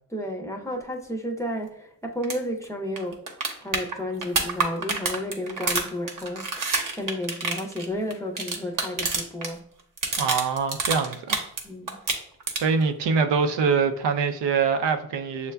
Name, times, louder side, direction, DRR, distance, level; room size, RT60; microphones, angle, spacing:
voice 1, 0.1-3.2 3.6-9.6 11.6-12.0, left 1 dB, 5° left, 0.5 m, -32 dB
sound 1, 2.2-2.4 2.6-2.7 3.0-9.5 9.8-11.6 11.9-12.8 14.9-15.0, right 3 dB, 50° right, 0.9 m, -28 dB
voice 2, 10.2-11.5 12.6-15.5, right 5 dB, 80° right, 0.6 m, -24 dB
6.7 x 2.3 x 2.2 m
cardioid pair, 65°, 41 cm